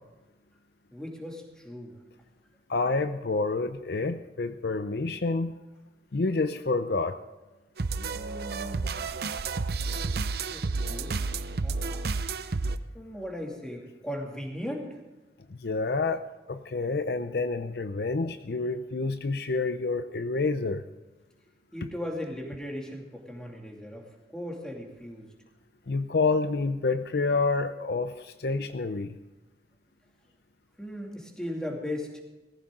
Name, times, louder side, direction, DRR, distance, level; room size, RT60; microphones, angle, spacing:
voice 1, 0.9-2.0 8.1-8.9 10.4-12.0 12.9-15.0 21.7-25.3 30.8-32.2, left 1 dB, 5° left, 0 dB, 2.6 m, -38 dB
voice 2, 2.7-5.6 6.1-7.2 15.5-16.2 16.5-20.8 25.9-29.2, left 3 dB, 60° left, 10 dB, 0.6 m, -28 dB
sound 1, 7.8-12.8, right 4 dB, 60° right, 0.6 m, -31 dB
18.5 x 15.0 x 3.8 m, 1.1 s
head